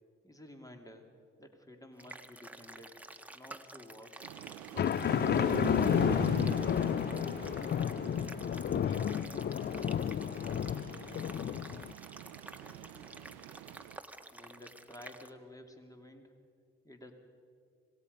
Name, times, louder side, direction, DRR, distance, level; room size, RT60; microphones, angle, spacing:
voice 1, 0.2-1.1 1.4-3.0 3.3-4.3 4.7-5.6 6.0-7.3 14.3-16.3 16.8-17.1, left 1 dB, 10° left, 4 dB, 2.8 m, -53 dB
sound 1, 2.0-15.3, right 1 dB, 5° right, 1.5 m, -51 dB
sound 2, 4.2-14.0, right 14 dB, 80° right, 0.7 m, -43 dB
sound 3, 4.8-11.9, left 9 dB, 35° left, 0.4 m, -31 dB
voice 2, 8.7-13.3, left 1 dB, 75° left, 2 dB, 4.8 m, -58 dB
27.0 x 18.5 x 5.4 m, 2.5 s
hypercardioid pair, 50°, 29 cm